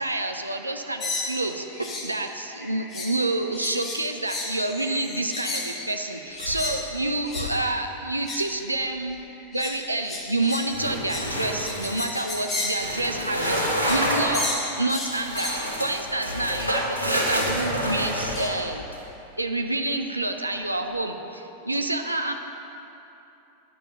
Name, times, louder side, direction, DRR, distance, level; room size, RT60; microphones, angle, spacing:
voice 1, 0.0-9.2 9.5-18.8 19.4-22.3, right 2 dB, 85° right, 5 dB, 0.6 m, -28 dB
sound 1, 1.0-2.1 2.4-3.2 3.5-6.8 7.2-7.5 8.1-8.5 9.1-14.1 14.3-15.6 16.6-16.9 17.3-17.6 18.1-18.7, left 2 dB, 25° left, 1.9 m, -34 dB
sound 2, 6.4-6.9 7.2-7.6 10.7-12.0 12.7-14.4 15.1-19.0, equal, 85° left, 1.7 m, -28 dB
17.5 x 10.5 x 2.9 m, 2.9 s
figure-of-eight pair, 90°, 0 cm